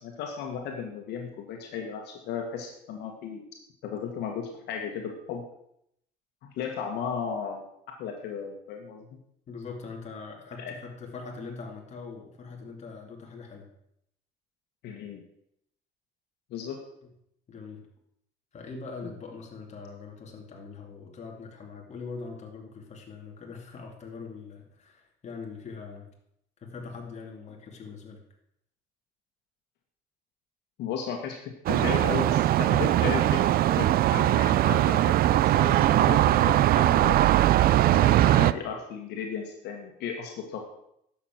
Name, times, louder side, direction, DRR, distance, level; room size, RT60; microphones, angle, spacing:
voice 1, 0.0-3.4 3.8-5.4 6.6-7.6 8.0-9.1 10.6-10.7 14.8-15.2 16.5-16.8 30.8-37.2 37.9-40.6, left 7 dB, 80° left, 2 dB, 1.8 m, -35 dB
voice 2, 9.5-13.7 17.5-17.9 18.5-26.1 26.6-28.2, left 4 dB, 40° left, 1 dB, 2.6 m, -42 dB
sound 1, 31.7-38.5, right 14 dB, 60° right, 0.4 m, -21 dB
11.0 x 7.3 x 6.1 m, 0.75 s
cardioid pair, 110°, 17 cm